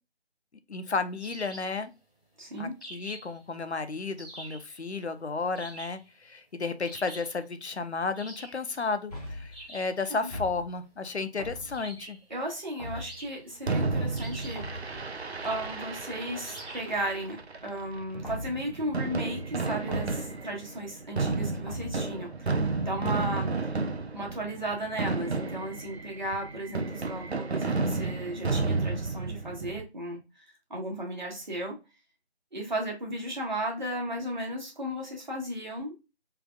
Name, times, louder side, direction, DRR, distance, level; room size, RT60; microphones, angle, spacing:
voice 1, 0.7-1.9 2.6-12.2, left 4 dB, 75° left, 11 dB, 0.7 m, -33 dB
sound 1, 1.2-1.8 2.8-3.4 4.2-4.7 5.5-6.1 6.8-7.4 8.1-8.7 9.5-10.0 11.7-12.3 12.9-13.6 14.1-14.7 15.4-15.7 16.4-17.0, right 2 dB, 5° right, 1.2 m, -46 dB
voice 2, 2.4-2.7 10.1-10.3 12.3-14.6 14.9-15.0 15.4-23.8 24.1-30.2 30.7-31.8 32.5-36.0, right 1 dB, 45° right, -1 dB, 1.3 m, -35 dB
sound 2, 9.1-9.6 10.3-11.0 11.4-12.0 12.8-13.3 14.6-15.0 16.6-17.4 18.2-18.8 19.9-20.4 21.7-22.2, left 1 dB, 35° left, 0.9 m, -41 dB
Fireworks, 13.7-29.8, right 3 dB, 70° right, 0.6 m, -32 dB
3.6 x 3.4 x 2.2 m, 0.27 s
figure-of-eight pair, 165°, 33 cm